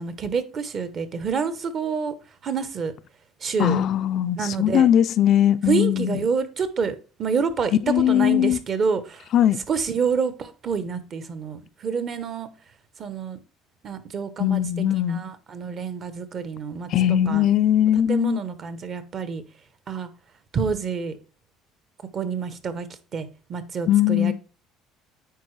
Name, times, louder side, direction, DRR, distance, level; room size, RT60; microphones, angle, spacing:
voice 1, 0.0-2.1 2.4-2.9 3.4-3.8 4.4-4.9 5.7-9.2 9.7-12.5 13.0-13.4 13.8-14.6 15.1-16.9 17.3-17.5 18.1-19.4 19.9-20.1 20.5-21.2 22.1-22.9 23.1-24.3, right 5 dB, 35° right, 0.8 m, -27 dB
voice 2, 3.6-6.2 7.8-8.6 9.3-9.6 14.4-15.2 16.9-18.4 23.9-24.3, left 11 dB, 50° left, 0.4 m, -20 dB
9.3 x 4.3 x 3.2 m
cardioid pair, 135°, 0 cm